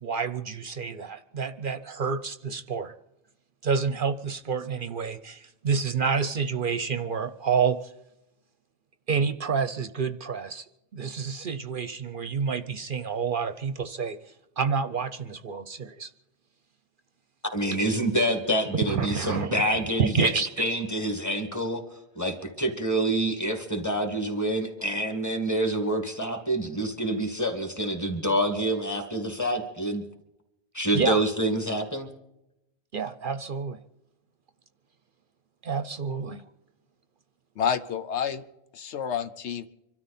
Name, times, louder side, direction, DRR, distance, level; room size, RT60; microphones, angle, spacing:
voice 1, 0.0-2.9 3.6-7.9 9.1-10.6 10.9-14.2 14.6-16.1 18.9-19.5 20.0-20.5 30.9-31.2 32.9-33.8 35.6-36.4, right 5 dB, 55° right, 12 dB, 0.8 m, -28 dB
voice 2, 17.5-20.3 20.6-21.8 22.2-30.0 30.7-32.1, right 1 dB, 15° left, 4 dB, 2.1 m, -27 dB
voice 3, 37.6-38.4 38.7-39.7, left 8 dB, 85° left, 11 dB, 1.2 m, -29 dB
25.5 x 13.0 x 4.3 m, 0.87 s
omnidirectional pair, 1.1 m